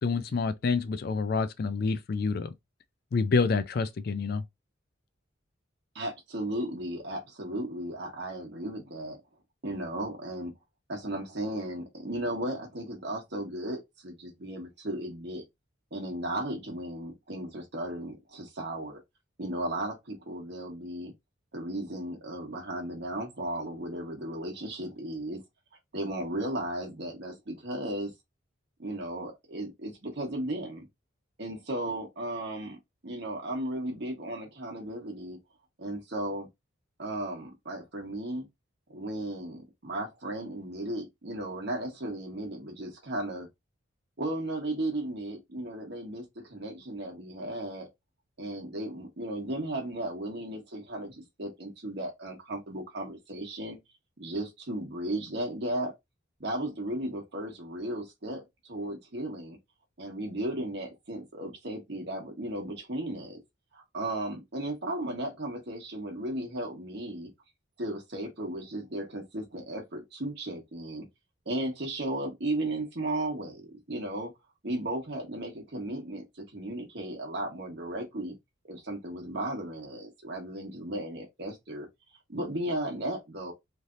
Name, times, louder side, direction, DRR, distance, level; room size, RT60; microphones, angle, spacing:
voice 1, 0.0-2.5 3.1-4.4, left 4 dB, 50° left, 0.3 m, -28 dB
voice 2, 5.9-9.2 9.6-10.5 10.9-15.4 15.9-19.0 19.4-21.1 21.5-25.4 25.9-28.1 28.8-30.9 31.4-32.8 33.0-35.4 35.8-36.5 37.0-38.5 38.9-43.5 44.2-47.9 48.4-53.8 54.2-55.9 56.4-59.6 60.0-63.4 63.7-67.3 67.8-71.1 71.4-74.3 74.6-78.4 78.6-81.9 82.3-83.5, right 1 dB, 55° right, 1.2 m, -35 dB
3.2 x 2.7 x 2.5 m
head